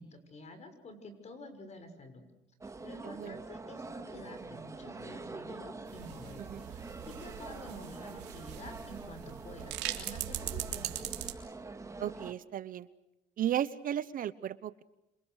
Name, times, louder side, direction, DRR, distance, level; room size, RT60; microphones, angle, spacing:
voice 1, 0.0-2.2 2.8-11.3, left 1 dB, 40° left, 9 dB, 6.4 m, -49 dB
sound 1, 2.6-12.3, right 3 dB, 20° right, 2.0 m, -45 dB
voice 2, 3.0-3.4 6.4-6.6 12.0-12.9 13.4-14.8, right 11 dB, 55° right, 16 dB, 1.0 m, -35 dB
sound 2, 5.9-11.3, right 13 dB, 85° right, 3.3 m, -41 dB
28.0 x 27.0 x 6.5 m, 0.91 s
cardioid pair, 110°, 17 cm